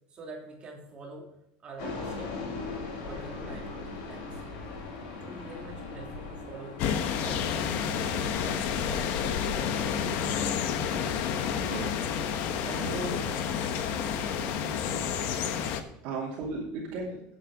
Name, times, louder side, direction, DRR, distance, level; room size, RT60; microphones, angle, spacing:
voice 1, 0.1-1.4 1.6-2.4 3.0-4.4 5.1-7.8, right 3 dB, 25° right, -1 dB, 3.0 m, -46 dB
Airplane flying, 1.8-14.5, left 3 dB, 85° left, 4.5 m, -41 dB
sound 1, 6.8-15.8, left 7 dB, 55° left, 1.1 m, -30 dB
voice 2, 11.6-13.3 16.0-17.2, right 3 dB, 55° right, -4 dB, 2.8 m, -36 dB
10.0 x 8.3 x 5.0 m, 0.78 s
cardioid pair, 160°, 4 cm